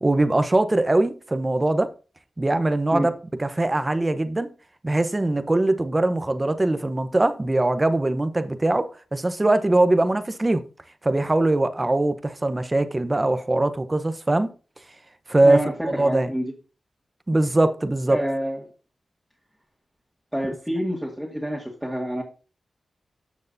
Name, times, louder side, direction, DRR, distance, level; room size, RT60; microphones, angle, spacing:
voice 1, 0.0-1.9 2.4-3.1 3.4-4.5 4.8-10.6 11.0-14.5 15.3-15.6 16.0-16.3 17.3-18.2, right 2 dB, 25° right, 0.9 m, -21 dB
voice 2, 15.4-16.5 18.1-18.6 20.3-22.2, equal, ahead, 2.1 m, -27 dB
13.0 x 6.6 x 2.7 m
cardioid pair, 70°, 0 cm